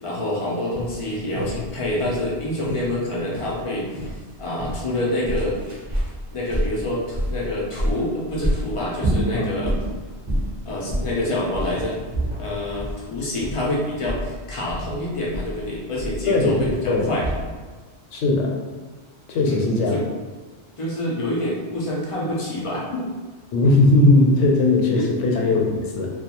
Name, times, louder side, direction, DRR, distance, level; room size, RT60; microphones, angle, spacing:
voice 1, 0.0-3.9 4.4-5.6 6.3-9.7 10.6-11.9 12.4-17.2 19.4-20.0 20.8-23.1 25.0-25.1, left 1 dB, 60° left, -4 dB, 0.3 m, -27 dB
sound 1, 0.7-17.6, right 1 dB, 35° right, 0.6 m, -29 dB
voice 2, 18.1-18.5 19.3-20.0 23.5-26.1, left 2 dB, 75° left, 0 dB, 0.9 m, -18 dB
2.2 x 2.2 x 2.8 m, 1.4 s
omnidirectional pair, 1.2 m